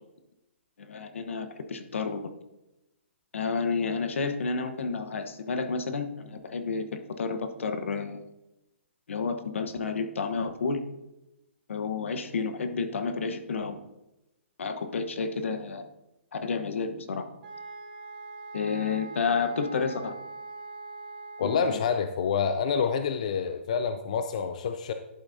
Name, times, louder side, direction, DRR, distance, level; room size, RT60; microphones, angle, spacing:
voice 1, 0.8-2.3 3.3-8.2 9.1-10.8 11.7-13.8 14.6-15.8 16.3-17.3 18.5-20.1 21.4-21.8, left 4 dB, 70° left, 8 dB, 1.1 m, -30 dB
sound 1, 17.4-22.1, right 3 dB, 40° right, 1.9 m, -42 dB
voice 2, 21.4-24.9, left 6 dB, 30° left, 8 dB, 0.4 m, -27 dB
11.0 x 7.9 x 2.7 m, 0.94 s
hypercardioid pair, 175°, 7 cm